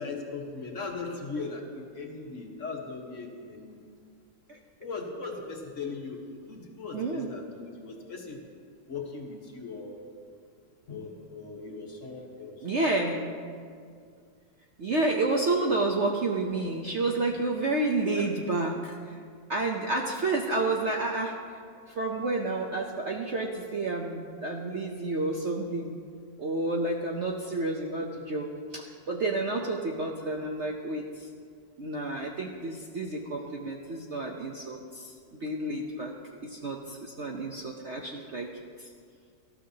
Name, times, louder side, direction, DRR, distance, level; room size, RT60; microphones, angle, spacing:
voice 1, 0.0-3.8 4.8-8.4 8.9-10.0 10.9-12.7 18.1-18.3, left 4 dB, 45° left, 0 dB, 1.6 m, -39 dB
voice 2, 6.9-7.3 12.6-13.3 14.8-19.2 19.5-21.4 21.9-26.0 26.4-31.3 31.8-36.1 36.4-38.5 38.8-38.9, right 2 dB, 55° right, 0 dB, 0.8 m, -30 dB
19.0 x 13.0 x 2.8 m, 2.2 s
omnidirectional pair, 1.9 m